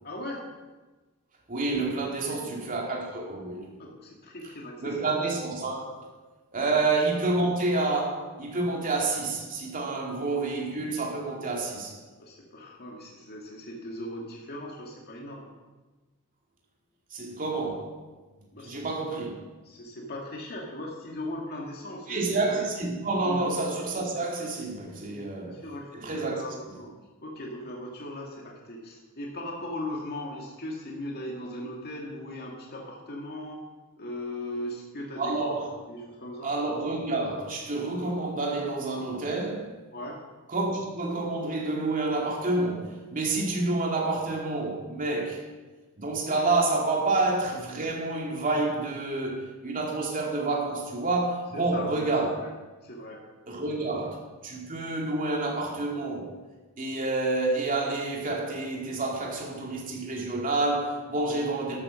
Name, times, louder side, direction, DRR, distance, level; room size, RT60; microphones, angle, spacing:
voice 1, 0.0-0.5 2.3-2.5 3.8-5.1 6.7-6.8 12.2-15.5 18.5-18.8 19.6-22.6 23.2-23.4 25.0-25.9 26.1-26.9 27.2-33.6 34.0-35.5 35.9-36.5 39.9-40.2 51.5-52.5 52.8-53.2, left 1 dB, 45° left, 2.3 m, -38 dB
voice 2, 1.5-3.7 4.8-6.1 6.5-12.0 17.1-18.0 18.6-19.3 22.1-25.6 25.9-26.4 35.2-35.7 36.4-39.7 40.5-45.4 46.0-52.4 53.5-56.3 56.8-61.8, right 2 dB, 40° right, 2.7 m, -28 dB
13.0 x 8.7 x 6.4 m
head